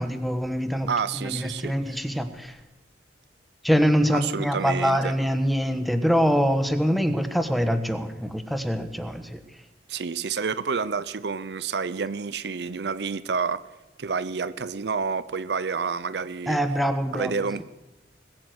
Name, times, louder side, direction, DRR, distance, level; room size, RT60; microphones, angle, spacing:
voice 1, 0.0-0.9 1.2-2.6 3.6-9.4 16.5-17.3, equal, ahead, 9 dB, 1.1 m, -24 dB
voice 2, 0.9-2.0 4.1-5.2 9.9-13.6 14.0-16.6 17.1-17.6, right 5 dB, 60° right, 16 dB, 0.5 m, -29 dB
21.0 x 8.8 x 7.9 m, 1.0 s
head